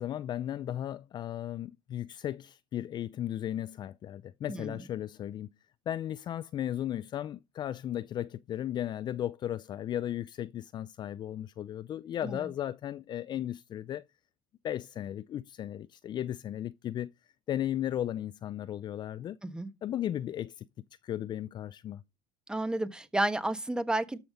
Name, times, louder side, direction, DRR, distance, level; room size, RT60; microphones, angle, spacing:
voice 1, 0.0-5.5 5.9-14.0 14.6-17.1 17.5-19.4 19.8-20.7 21.0-22.0, left 11 dB, 40° left, 0.5 m, -35 dB
voice 2, 22.5-24.2, right 1 dB, 5° right, 1.3 m, -31 dB
13.0 x 6.0 x 5.1 m
supercardioid pair, 105°, 12 cm